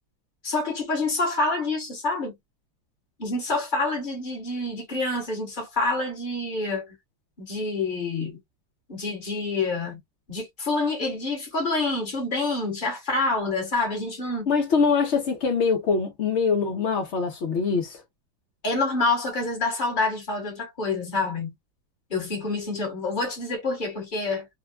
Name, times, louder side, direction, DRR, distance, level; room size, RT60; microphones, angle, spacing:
voice 1, 0.4-2.3 3.2-6.9 7.4-8.4 8.9-10.0 10.3-14.5 18.6-21.5 22.1-24.5, left 3 dB, 30° left, 1.2 m, -27 dB
voice 2, 14.5-18.0, left 5 dB, 70° left, 0.6 m, -23 dB
3.5 x 2.2 x 2.2 m
omnidirectional pair, 2.1 m